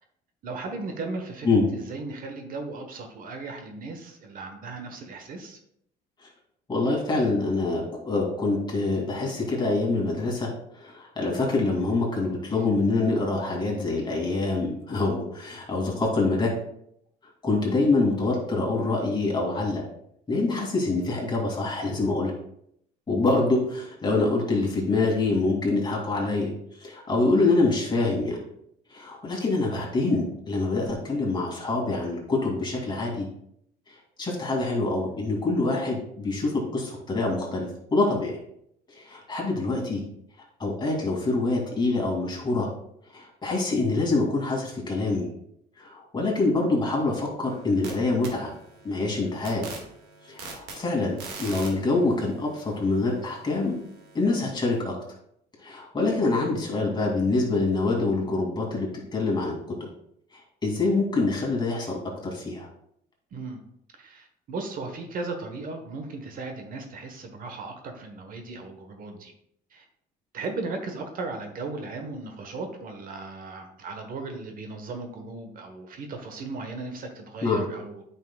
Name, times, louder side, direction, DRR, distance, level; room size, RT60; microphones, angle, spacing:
voice 1, 0.4-1.5 1.7-5.6 63.3-63.6 64.0-69.3 69.7-69.8 70.3-78.0, right 3 dB, 55° right, 5 dB, 1.2 m, -36 dB
voice 2, 6.7-16.5 17.4-19.8 20.3-22.3 23.1-26.5 26.8-28.4 28.9-33.3 33.9-38.4 38.9-40.0 40.6-42.7 43.1-45.3 45.8-48.5 48.8-49.7 50.2-53.8 54.1-55.0 55.6-59.9 60.3-62.7 77.4-77.7, left 3 dB, 25° left, -2 dB, 2.5 m, -25 dB
sound 1, 47.4-47.9 48.2-54.8, right 3 dB, 85° right, 1.9 m, -44 dB
9.5 x 5.7 x 2.3 m, 0.72 s
cardioid pair, 110°, 17 cm